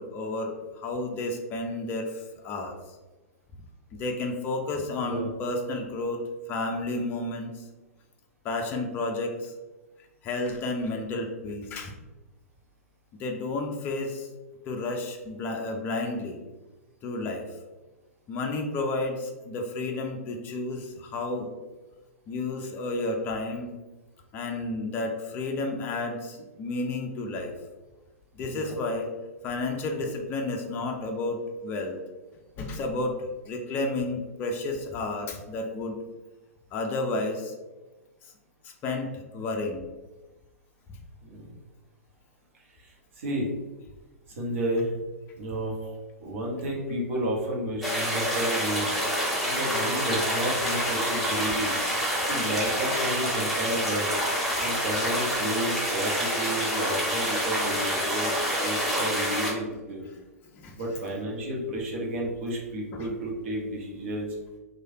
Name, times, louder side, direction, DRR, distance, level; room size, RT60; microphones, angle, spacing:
voice 1, 0.0-2.8 3.9-6.2 6.5-7.6 8.4-9.5 10.2-11.9 13.2-14.3 14.7-16.4 17.0-17.5 18.3-21.5 22.3-23.8 24.3-27.5 28.3-29.1 29.4-32.0 32.6-33.2 33.4-36.0 36.7-37.5 38.6-39.9 60.5-60.8 62.9-63.1, left 2 dB, 25° left, 3 dB, 0.4 m, -31 dB
voice 2, 42.8-43.5 44.3-44.9 45.4-45.9 46.2-48.9 49.4-51.7 52.2-54.1 54.6-60.0 60.8-64.3, right 1 dB, 50° right, -2 dB, 0.9 m, -31 dB
sound 1, 47.8-59.5, equal, ahead, 0.7 m, -27 dB
3.1 x 2.2 x 2.7 m, 1.2 s
figure-of-eight pair, 110°, 8 cm